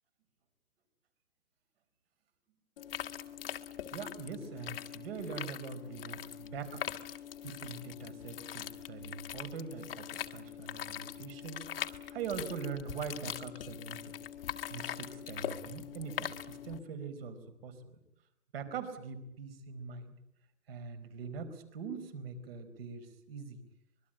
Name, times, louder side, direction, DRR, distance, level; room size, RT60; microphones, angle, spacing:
sound 1, 2.8-16.8, left 10 dB, 40° left, 1.7 m, -42 dB
voice 1, 3.9-6.8 7.4-14.2 14.7-17.8 18.5-20.1 20.7-23.6, right 5 dB, 40° right, 10 dB, 4.4 m, -42 dB
25.5 x 22.5 x 8.7 m, 0.82 s
hypercardioid pair, 160°, 45 cm